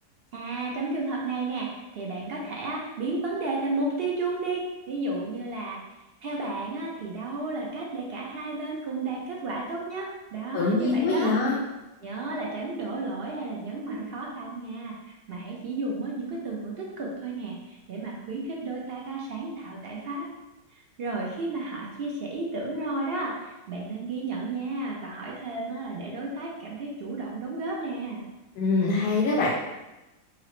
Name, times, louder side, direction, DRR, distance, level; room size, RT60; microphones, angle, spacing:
voice 1, 0.3-5.8 6.2-11.3 12.0-20.3 20.7-28.2, right 2 dB, 65° right, -2 dB, 0.6 m, -33 dB
voice 2, 10.5-11.6 28.6-29.5, left 3 dB, 75° left, -3 dB, 1.1 m, -24 dB
5.4 x 2.0 x 3.1 m, 1.0 s
omnidirectional pair, 1.7 m